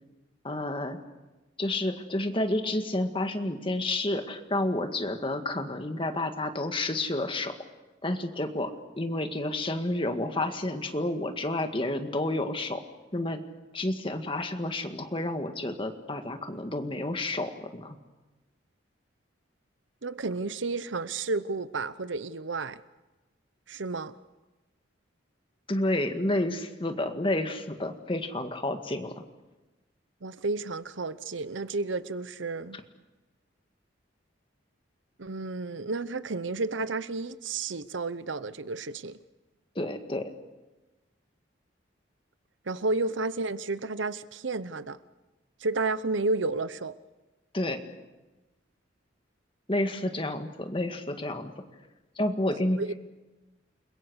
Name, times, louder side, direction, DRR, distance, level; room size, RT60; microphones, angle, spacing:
voice 1, 0.4-1.0 1.6-7.5 8.0-8.7 9.0-12.8 13.1-13.4 13.7-18.0 25.7-29.1 39.8-40.3 47.5-47.8 49.7-51.5 52.2-53.0, left 1 dB, 25° left, 1.9 m, -30 dB
voice 2, 20.0-22.8 23.7-24.2 30.2-32.8 35.2-39.2 42.7-45.0 45.6-46.9 52.8-52.9, right 3 dB, 80° right, 0.9 m, -31 dB
29.5 x 22.0 x 6.4 m
head